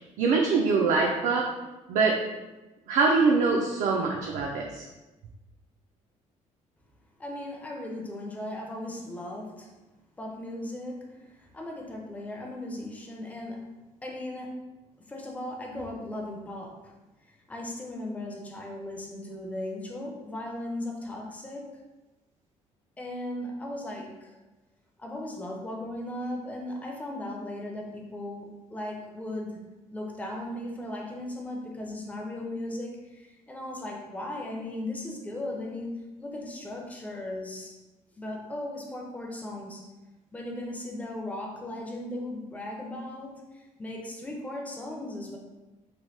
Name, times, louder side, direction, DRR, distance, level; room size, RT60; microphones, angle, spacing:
voice 1, 0.2-1.4 1.9-2.2 2.9-4.9, right 4 dB, 80° right, -1 dB, 0.4 m, -23 dB
voice 2, 7.2-9.7 10.2-13.7 14.0-14.6 15.0-16.9 17.3-21.8 23.0-24.4 25.0-29.6 29.9-37.8 38.2-39.9 40.3-45.4, left 1 dB, 10° left, 0 dB, 0.4 m, -37 dB
2.9 x 2.1 x 3.1 m, 1.1 s
cardioid pair, 155°, 13 cm